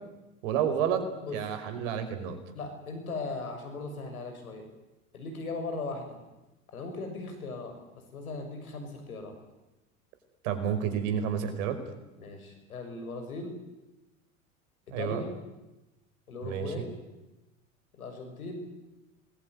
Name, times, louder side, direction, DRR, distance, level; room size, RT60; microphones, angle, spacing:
voice 1, 0.4-1.0 1.3-2.4 10.4-11.8 14.9-15.2 16.4-16.7, right 8 dB, 65° right, 8 dB, 5.4 m, -30 dB
voice 2, 2.5-4.7 5.1-6.2 6.7-7.8 8.1-9.4 12.2-13.6 14.9-15.4 16.3-16.9 17.9-18.6, left 3 dB, 80° left, 6 dB, 6.6 m, -38 dB
27.0 x 21.5 x 9.6 m, 1.0 s
hypercardioid pair, 85°, 43 cm